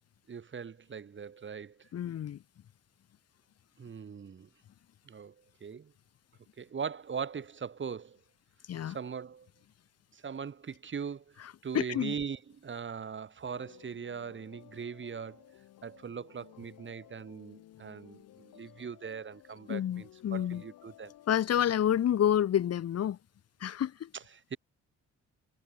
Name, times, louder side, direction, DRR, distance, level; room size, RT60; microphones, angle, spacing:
voice 1, 0.3-1.9 3.8-4.5 5.1-5.3 5.6-5.9 6.6-8.2 8.8-9.5 10.1-11.4 11.6-15.5 15.8-21.1 24.1-24.6, right 6 dB, 40° right, 2.2 m, -40 dB
voice 2, 1.9-2.4 8.7-9.0 11.7-12.1 19.7-20.6 21.3-23.2 23.6-24.1, left 10 dB, 55° left, 1.1 m, -29 dB
sound 1, 13.4-21.5, left 14 dB, 80° left, 7.7 m, -56 dB
cardioid pair, 90°, 30 cm